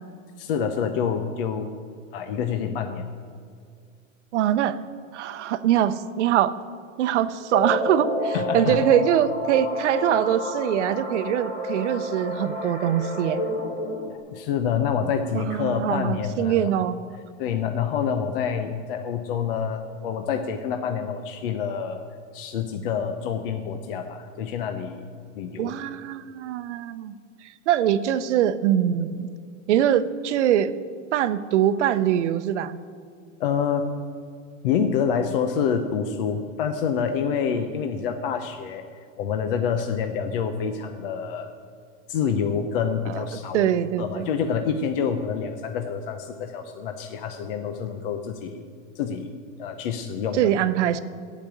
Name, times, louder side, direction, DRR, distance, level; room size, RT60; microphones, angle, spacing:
voice 1, 0.4-1.7 2.1-3.1 8.3-8.8 14.3-16.9 17.4-22.0 22.3-25.7 33.4-33.9 34.6-41.5 42.1-43.7 44.0-48.6 48.9-49.3 49.6-50.5, left 7 dB, 45° left, 6 dB, 0.7 m, -27 dB
voice 2, 4.3-4.8 5.1-6.5 7.0-13.4 15.3-17.0 25.6-27.1 27.7-29.3 29.7-30.7 31.1-32.8 43.1-43.2 43.5-44.3 50.3-51.0, right 10 dB, 60° right, 12 dB, 0.8 m, -23 dB
sound 1, 7.5-14.2, left 1 dB, 20° left, 1.6 m, -30 dB
15.0 x 5.2 x 9.0 m, 2.3 s
supercardioid pair, 175°, 39 cm